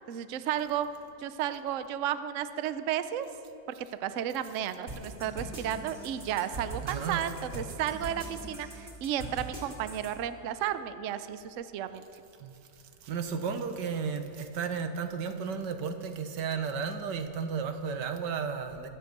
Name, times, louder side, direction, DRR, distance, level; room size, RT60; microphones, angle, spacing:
voice 1, 0.1-0.9 1.2-3.3 4.0-12.0, right 10 dB, 60° right, 11 dB, 0.8 m, -33 dB
sound 1, 4.9-10.1, right 2 dB, 40° right, 3.0 m, -41 dB
voice 2, 6.8-7.2 12.4-12.5 13.0-18.9, right 6 dB, 85° right, 8 dB, 1.6 m, -33 dB
23.5 x 8.0 x 6.7 m, 2.7 s
omnidirectional pair, 1.8 m